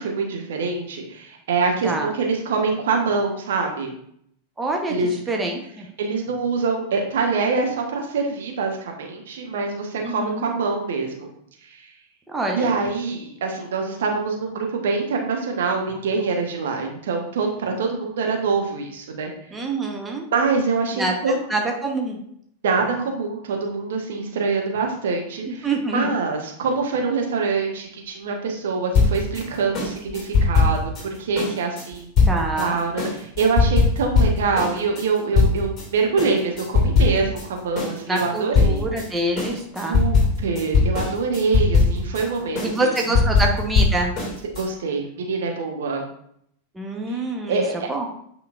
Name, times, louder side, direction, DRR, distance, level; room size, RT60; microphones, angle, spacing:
voice 1, 0.0-3.9 4.9-5.1 6.0-11.3 11.6-11.9 12.5-19.3 20.3-21.4 22.6-32.1 32.6-38.9 39.9-43.2 44.6-46.0 47.1-47.2 47.5-47.9, right 4 dB, 60° right, 2 dB, 1.1 m, -25 dB
voice 2, 4.6-4.9 5.3-5.9 10.0-10.5 12.3-12.7 19.5-20.3 20.9-22.2 25.5-26.1 32.2-32.8 38.1-40.0 42.6-44.1 46.7-47.6 47.9-48.1, right 2 dB, 10° right, 1 dB, 1.0 m, -26 dB
sound 1, 28.9-35.9 36.2-37.5 37.8-44.7, left 4 dB, 25° left, 2.5 m, -20 dB
8.6 x 5.1 x 2.5 m, 0.69 s
figure-of-eight pair, 90°, 0 cm